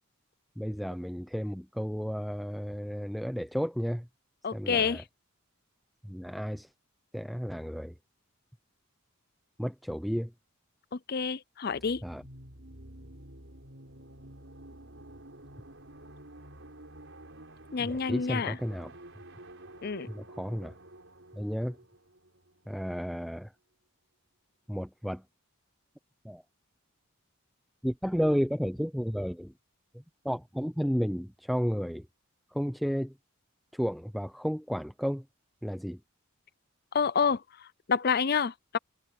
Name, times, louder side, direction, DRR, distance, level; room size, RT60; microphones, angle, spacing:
voice 1, 0.6-4.1 4.5-5.0 6.0-6.7 7.1-7.9 9.6-10.3 12.0-12.2 17.8-18.9 20.1-20.7 21.4-21.8 22.7-23.5 24.7-25.2 26.2-26.4 27.8-29.5 29.9-32.1 32.5-33.1 33.7-35.2 35.6-36.0, equal, ahead, 0.8 m, -32 dB
voice 2, 4.4-5.0 10.9-12.0 17.7-18.6 19.8-20.1 36.9-38.8, left 6 dB, 45° left, 0.5 m, -29 dB
sound 1, 11.7-23.2, right 1 dB, 55° right, 6.6 m, -50 dB
head